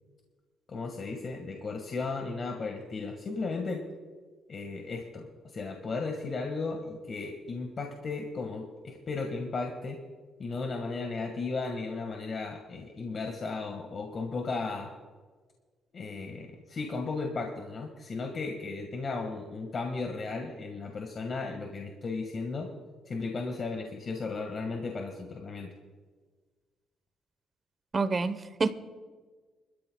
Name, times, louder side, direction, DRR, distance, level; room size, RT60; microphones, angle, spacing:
voice 1, 0.7-3.8 4.5-5.3 5.5-10.0 10.4-14.9 15.9-22.7 23.1-25.7, left 3 dB, 45° left, 2 dB, 1.7 m, -35 dB
voice 2, 27.9-28.7, right 4 dB, 35° right, 11 dB, 1.0 m, -28 dB
25.0 x 13.5 x 2.3 m, 1.4 s
cardioid pair, 90°, 0 cm